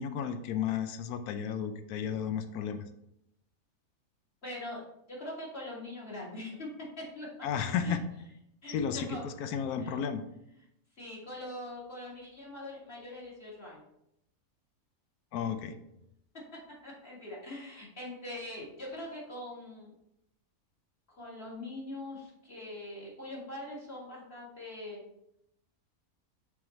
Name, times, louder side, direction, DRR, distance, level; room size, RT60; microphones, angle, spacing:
voice 1, 0.0-2.9 7.4-8.1 8.7-10.2 15.3-15.8, left 7 dB, 90° left, 8 dB, 1.1 m, -33 dB
voice 2, 4.4-7.3 7.8-8.0 8.6-9.2 9.8-10.0 11.0-13.8 16.8-19.9 21.1-25.0, left 1 dB, 40° left, -5 dB, 2.1 m, -42 dB
6.8 x 3.5 x 4.2 m, 0.79 s
omnidirectional pair, 1.6 m